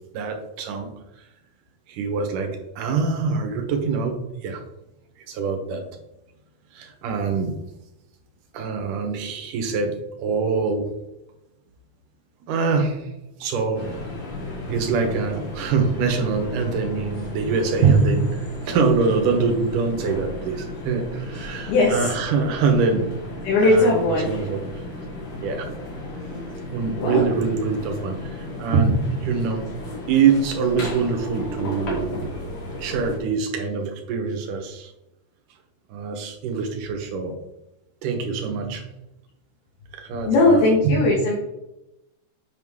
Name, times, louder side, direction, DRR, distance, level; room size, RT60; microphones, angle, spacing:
voice 1, 0.1-0.9 1.9-4.6 5.3-5.8 6.7-7.5 8.5-10.9 12.5-13.1 13.4-13.9 14.7-23.1 23.6-24.6 25.4-25.7 26.7-29.6 30.1-32.2 32.8-34.9 35.9-37.3 38.0-38.8 39.9-41.0, right 5 dB, 65° right, 3 dB, 2.4 m, -24 dB
sound 1, 13.7-33.2, left 2 dB, 45° left, 2.6 m, -34 dB
voice 2, 21.7-22.1 23.4-24.3 27.0-27.2 40.3-41.3, left 2 dB, 75° left, -3 dB, 3.3 m, -18 dB
8.0 x 6.5 x 3.6 m, 0.92 s
omnidirectional pair, 4.5 m